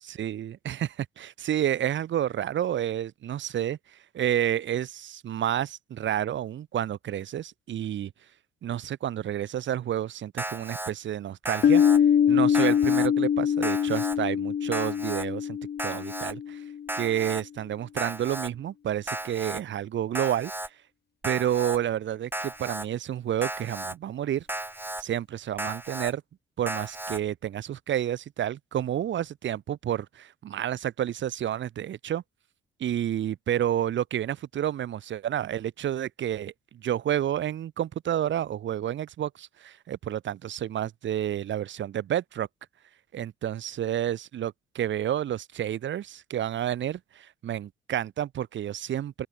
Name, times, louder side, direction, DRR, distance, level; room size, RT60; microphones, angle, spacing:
voice 1, 0.0-3.8 4.1-8.1 8.6-11.8 12.3-16.6 16.9-20.5 21.2-24.5 25.0-26.2 26.6-32.2 32.8-42.5 43.1-49.3, right 11 dB, 70° right, 5.1 m, -30 dB
Alarm, 10.4-10.9 11.5-12.0 12.5-13.1 13.6-14.2 14.7-15.3 15.8-16.3 16.9-17.4 18.0-18.5 19.1-19.6 20.2-20.7 21.2-21.8 22.3-22.9 23.4-24.0 24.5-25.0 25.6-26.1 26.7-27.2, right 1 dB, 10° right, 7.0 m, -34 dB
Piano, 11.6-17.0, left 8 dB, 55° left, 2.5 m, -24 dB
open air
cardioid pair, 90°, 20 cm